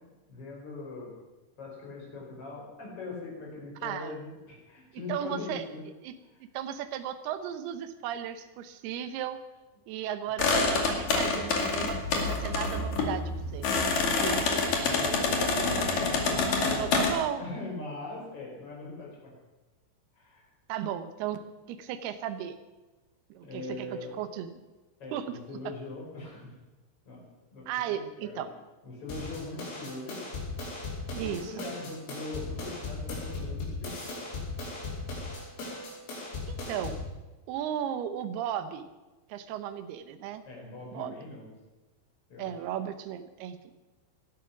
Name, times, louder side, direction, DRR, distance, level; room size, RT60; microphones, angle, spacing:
voice 1, 0.3-1.1 1.6-5.8 14.1-15.3 16.0-17.1 17.4-19.3 20.1-20.5 23.4-24.2 25.0-26.5 27.0-27.2 27.5-28.4 28.8-30.2 31.2-34.1 40.4-41.5 42.3-42.5, left 3 dB, 30° left, -2 dB, 5.8 m, -41 dB
voice 2, 3.8-4.1 5.1-5.6 6.0-6.1 6.5-9.4 9.9-13.7 14.2-14.4 15.4-15.8 16.8-17.4 20.7-21.4 21.7-22.6 23.3-23.9 24.2-24.5 25.1-25.6 27.7-28.5 31.1-31.7 36.5-37.0 37.5-38.9 39.3-40.4 40.9-41.1 42.4-43.6, right 10 dB, 75° right, 10 dB, 2.4 m, -35 dB
sound 1, 10.4-17.1, left 3 dB, 50° left, 3.3 m, -27 dB
sound 2, 29.1-37.1, left 3 dB, 75° left, 7.7 m, -37 dB
18.5 x 12.0 x 6.1 m, 1.1 s
omnidirectional pair, 5.9 m